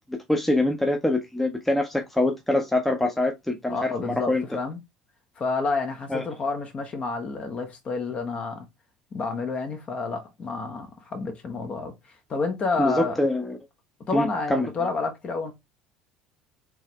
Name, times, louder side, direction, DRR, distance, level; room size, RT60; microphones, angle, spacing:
voice 1, 0.1-4.4 6.1-6.2 12.8-13.6 14.1-14.7, left 1 dB, 5° left, 0.7 m, -24 dB
voice 2, 3.7-4.8 5.4-8.6 9.1-11.9 12.3-13.2 14.1-15.5, left 4 dB, 40° left, 1.2 m, -29 dB
3.5 x 3.2 x 3.3 m
figure-of-eight pair, 60°, 3 cm